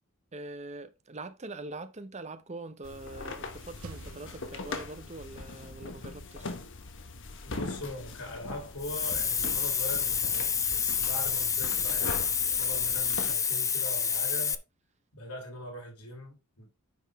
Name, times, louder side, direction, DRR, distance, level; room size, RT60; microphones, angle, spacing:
voice 1, 0.3-6.5, right 2 dB, 30° right, 0.9 m, -43 dB
sound 1, 2.8-13.3, left 3 dB, 55° left, 1.2 m, -41 dB
sound 2, 3.0-5.2, right 3 dB, 65° right, 0.9 m, -51 dB
voice 2, 7.4-14.6 15.1-16.7, left 1 dB, 90° left, 3.7 m, -41 dB
Hiss, 8.8-14.6, left 7 dB, 15° left, 0.4 m, -28 dB
9.4 x 5.2 x 3.6 m
head